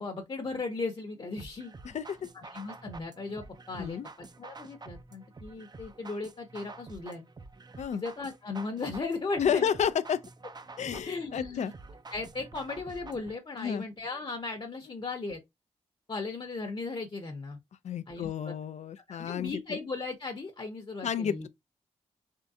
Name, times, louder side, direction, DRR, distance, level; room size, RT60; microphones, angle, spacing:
voice 1, 0.0-1.7 2.3-4.0 4.4-7.2 7.9-9.7 11.0-11.7 12.1-15.4 16.1-17.6 18.1-18.5 19.1-21.5, left 3 dB, 40° left, 0.9 m, -37 dB
sound 1, 1.4-13.4, right 3 dB, 35° right, 0.6 m, -48 dB
voice 2, 1.8-2.3 3.8-4.1 7.8-8.0 9.4-10.2 10.8-11.7 13.6-13.8 17.8-19.8 21.0-21.5, left 8 dB, 65° left, 0.5 m, -31 dB
3.7 x 3.2 x 2.7 m
supercardioid pair, 45°, 13 cm